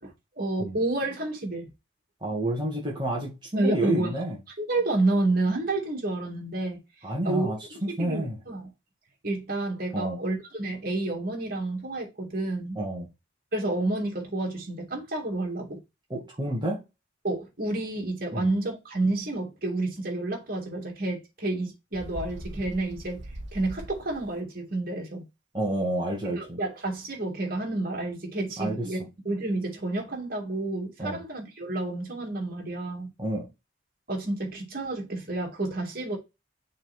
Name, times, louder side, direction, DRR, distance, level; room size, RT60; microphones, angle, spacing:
voice 1, 0.0-1.7 3.5-4.1 4.6-6.8 7.2-8.7 9.2-12.8 13.5-15.8 17.2-25.2 26.3-29.0 29.2-33.1 34.1-36.2, right 2 dB, 50° right, 2.9 m, -30 dB
voice 2, 2.2-4.4 7.0-8.4 9.9-10.2 12.8-13.1 16.1-16.8 18.3-18.5 25.5-26.6 28.6-28.9 31.0-31.2 33.2-33.5, right 1 dB, 25° right, 2.2 m, -29 dB
Bird, 21.9-24.4, right 1 dB, 70° right, 1.5 m, -41 dB
6.3 x 4.1 x 4.5 m
head